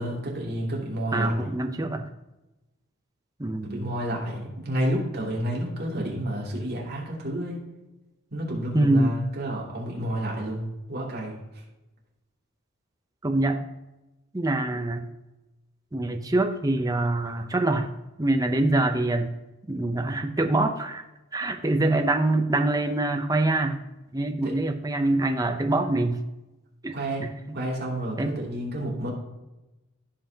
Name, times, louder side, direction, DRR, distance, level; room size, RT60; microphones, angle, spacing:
voice 1, 0.0-1.4 3.6-7.6 8.3-11.3 24.4-24.5 26.9-27.2 27.5-29.1, right 1 dB, 50° right, -3 dB, 2.7 m, -30 dB
voice 2, 1.1-2.0 3.4-4.0 8.7-9.2 13.2-13.7 14.3-15.0 15.9-17.9 18.2-19.3 19.7-21.0 21.3-23.8 24.1-26.2 26.8-27.6 28.2-28.3, right 2 dB, 15° right, 5 dB, 0.6 m, -25 dB
15.5 x 5.6 x 2.9 m, 1.0 s
head